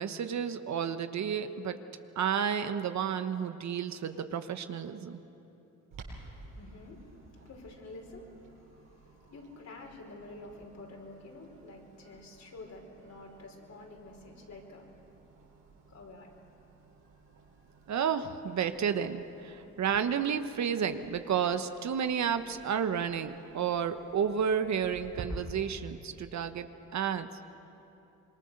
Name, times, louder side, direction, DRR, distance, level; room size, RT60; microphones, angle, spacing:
voice 1, 0.0-1.8 2.2-5.2 17.9-26.7 26.9-27.3, right 7 dB, 60° right, 9 dB, 1.2 m, -31 dB
Clock, 5.9-25.3, right 4 dB, 75° right, 6.4 m, -54 dB
voice 2, 6.3-15.0 15.9-16.3, left 2 dB, 55° left, 0 dB, 5.3 m, -49 dB
26.5 x 22.5 x 6.6 m, 2.9 s
supercardioid pair, 70°, 32 cm